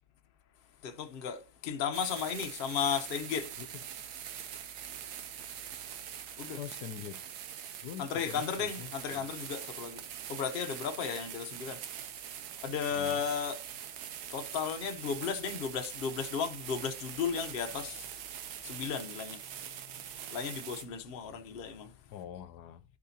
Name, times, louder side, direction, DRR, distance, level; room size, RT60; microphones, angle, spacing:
voice 1, 0.8-3.5 6.4-6.6 8.0-10.0 10.3-11.8 12.6-13.6 14.3-18.1 18.6-19.4 20.3-21.9, left 7 dB, 45° left, 0.8 m, -34 dB
sound 1, 1.9-20.8, right 9 dB, 85° right, 1.3 m, -44 dB
voice 2, 6.6-7.3 7.8-9.3 12.9-13.2 22.1-22.8, left 10 dB, 85° left, 1.2 m, -44 dB
12.0 x 4.9 x 2.8 m
omnidirectional pair, 1.7 m